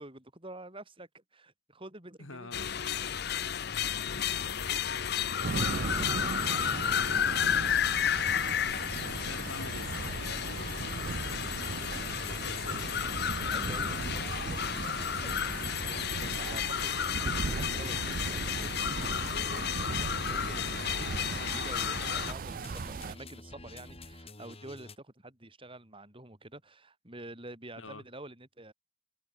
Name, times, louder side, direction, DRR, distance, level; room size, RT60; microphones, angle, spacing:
voice 1, 0.0-3.0 5.0-5.1 11.6-12.8 13.4-15.4 15.8-28.7, right 1 dB, 25° right, 5.9 m, -49 dB
voice 2, 2.2-2.7 4.0-4.6 5.2-7.8 9.0-11.1 12.3-12.8 27.8-28.0, left 3 dB, 75° left, 4.5 m, -47 dB
sound 1, 2.5-22.3, left 8 dB, 55° left, 0.9 m, -32 dB
sound 2, 5.4-23.2, right 4 dB, 45° right, 0.4 m, -38 dB
sound 3, 10.2-25.0, left 2 dB, 30° left, 4.5 m, -49 dB
head